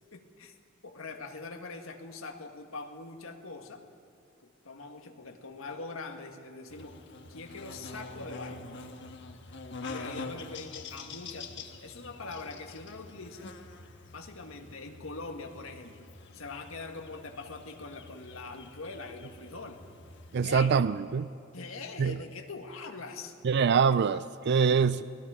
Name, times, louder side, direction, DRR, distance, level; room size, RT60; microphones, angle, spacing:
voice 1, 0.1-0.5 0.8-3.8 4.4-7.0 7.3-8.7 9.9-13.5 14.1-19.8 20.4-20.8 21.5-23.4 24.7-24.9, left 3 dB, 75° left, 4 dB, 1.8 m, -43 dB
Buzz, 6.7-20.7, left 3 dB, 60° left, 1.4 m, -46 dB
voice 2, 20.3-21.3 22.0-22.2 23.4-25.0, right 6 dB, 55° right, 15 dB, 0.4 m, -24 dB
29.5 x 19.5 x 5.0 m, 2.5 s
head